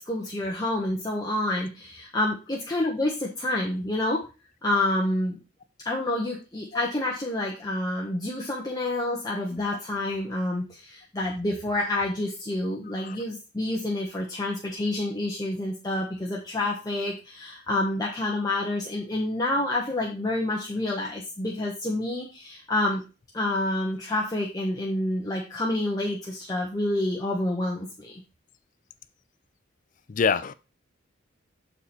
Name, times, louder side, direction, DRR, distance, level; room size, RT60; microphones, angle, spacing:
voice 1, 0.0-4.2 4.6-5.4 5.8-23.0 23.3-28.2, left 1 dB, 20° left, 1.0 m, -28 dB
voice 2, 30.1-30.5, left 5 dB, 45° left, 0.4 m, -25 dB
7.1 x 4.2 x 4.3 m
head